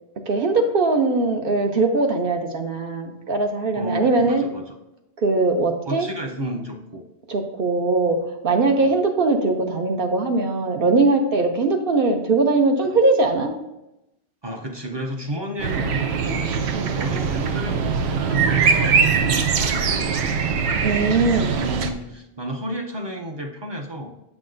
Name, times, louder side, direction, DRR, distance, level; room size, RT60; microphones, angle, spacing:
voice 1, 0.3-4.4 5.2-6.1 7.3-8.2 8.4-13.5 16.7-16.9 18.6-19.0 20.8-21.6, right 3 dB, 65° right, 4 dB, 0.9 m, -21 dB
voice 2, 3.8-4.8 5.9-7.0 8.8-8.9 14.4-20.6 21.4-24.1, equal, 35° right, 2 dB, 0.5 m, -32 dB
sound 1, 15.6-21.9, right 6 dB, 85° right, 0.9 m, -22 dB
7.6 x 6.0 x 2.5 m, 0.92 s
omnidirectional pair, 1.1 m